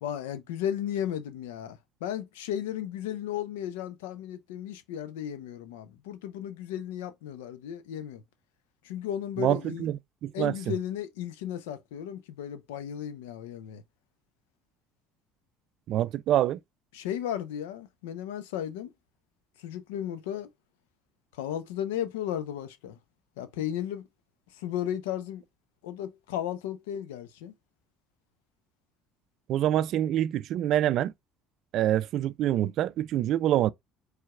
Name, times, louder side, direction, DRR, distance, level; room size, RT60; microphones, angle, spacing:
voice 1, 0.0-8.2 8.8-9.9 10.3-13.8 16.9-18.9 19.6-20.5 21.3-23.0 23.4-24.1 24.5-25.4 25.8-27.5, left 10 dB, 80° left, 0.6 m, -35 dB
voice 2, 9.4-10.5 15.9-16.6 29.5-31.1 31.7-33.7, right 12 dB, 60° right, 0.3 m, -26 dB
4.6 x 3.3 x 2.3 m
hypercardioid pair, 65°, 0 cm